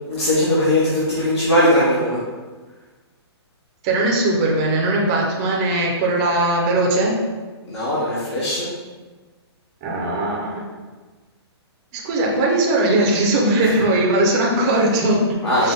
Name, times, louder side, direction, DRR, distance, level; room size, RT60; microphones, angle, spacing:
voice 1, 0.0-2.2 7.6-8.7 15.4-15.7, left 1 dB, 85° left, -9 dB, 1.4 m, -19 dB
voice 2, 3.8-7.2 9.8-10.7 11.9-15.7, right 2 dB, 15° right, -2 dB, 0.4 m, -19 dB
5.0 x 2.1 x 3.7 m, 1.3 s
hypercardioid pair, 175°, 14 cm